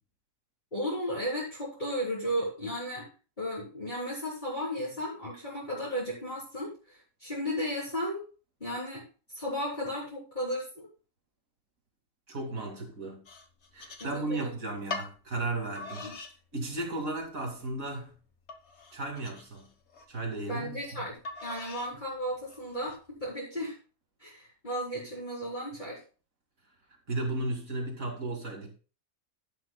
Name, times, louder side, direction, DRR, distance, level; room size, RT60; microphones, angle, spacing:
voice 1, 0.7-3.1 3.4-8.2 8.6-9.0 9.3-10.9 14.0-14.5 16.0-16.1 20.5-21.2 21.4-23.8 24.2-26.0, equal, 35° left, 3.6 m, -34 dB
voice 2, 12.3-13.2 13.7-16.1 16.5-18.1 18.9-19.7 20.1-21.1 27.1-28.7, right 2 dB, 80° right, 2.8 m, -35 dB
sound 1, 13.2-14.5 14.9-15.1 15.7-16.3 16.8-17.3 17.8-17.9 18.5-20.1 21.2-21.9 22.5-23.0, left 3 dB, 55° left, 1.5 m, -42 dB
11.5 x 10.5 x 2.3 m
omnidirectional pair, 1.4 m